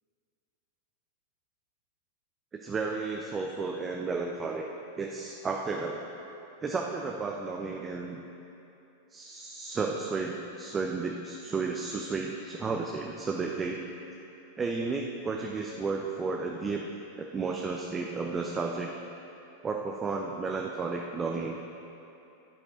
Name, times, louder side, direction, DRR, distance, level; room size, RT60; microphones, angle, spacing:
voice 1, 2.6-4.7 5.0-6.0 6.6-8.2 9.1-13.8 14.6-16.9 17.2-18.9 19.6-21.6, right 4 dB, 20° right, 1 dB, 0.7 m, -33 dB
14.5 x 8.5 x 3.8 m, 3.0 s
figure-of-eight pair, 90°, 0 cm